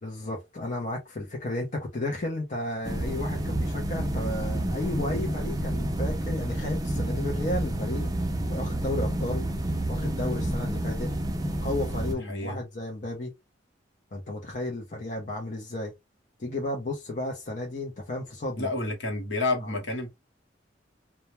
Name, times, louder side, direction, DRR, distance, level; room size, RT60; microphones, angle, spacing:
voice 1, 0.0-8.1 8.4-9.4 9.9-11.1 11.6-13.3 14.1-15.9 16.4-18.7 19.6-19.8, left 2 dB, 45° left, 0.6 m, -33 dB
sound 1, 2.8-12.1, right 1 dB, 20° right, 0.4 m, -29 dB
voice 2, 18.6-20.1, left 2 dB, 70° left, 1.0 m, -29 dB
2.2 x 2.1 x 2.9 m
head